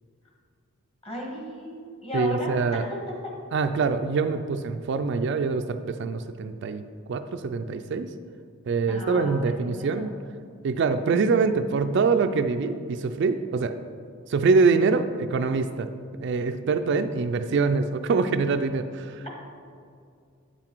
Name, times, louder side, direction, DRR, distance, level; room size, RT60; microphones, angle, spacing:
voice 1, 1.0-2.5 8.9-10.1 19.2-19.3, equal, 25° left, -1 dB, 1.4 m, -35 dB
voice 2, 2.1-2.8 3.5-6.8 7.1-8.1 8.7-10.1 10.6-13.7 14.3-15.9 16.2-19.3, right 4 dB, 55° right, 8 dB, 0.3 m, -24 dB
8.3 x 5.9 x 4.5 m, 2.3 s
head